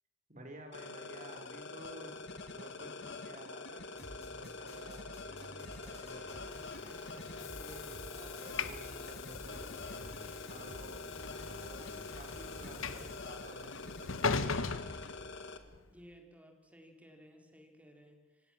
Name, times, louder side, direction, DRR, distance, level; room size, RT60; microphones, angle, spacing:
voice 1, 0.3-2.1 2.5-6.5 7.0-10.0 10.5-11.0 11.5-11.9 12.1-14.4, right 1 dB, 40° right, 4 dB, 5.1 m, -53 dB
sound 1, 0.7-15.6, left 3 dB, 65° left, 1.9 m, -46 dB
sound 2, 3.9-13.1, left 1 dB, 30° left, 6.2 m, -50 dB
Train / Sliding door, 6.5-15.8, left 4 dB, 85° left, 1.3 m, -41 dB
voice 2, 15.7-18.5, equal, 5° right, 4 dB, 3.8 m, -58 dB
27.0 x 17.5 x 7.6 m, 1.3 s
head